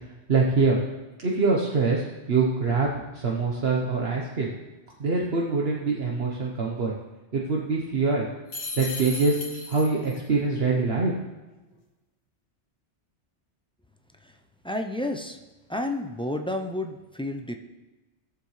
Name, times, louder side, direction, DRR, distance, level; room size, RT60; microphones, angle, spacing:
voice 1, 0.3-0.8 1.2-2.9 3.1-4.5 5.0-6.9 7.3-8.3 8.8-9.4 9.7-11.1, right 4 dB, 60° right, -2 dB, 1.3 m, -24 dB
sound 1, 8.5-10.2, left 2 dB, 80° left, 1.8 m, -35 dB
voice 2, 14.6-15.4 15.7-17.6, left 1 dB, 10° left, 4 dB, 0.3 m, -31 dB
18.0 x 7.0 x 3.2 m, 1.2 s
omnidirectional pair, 1.2 m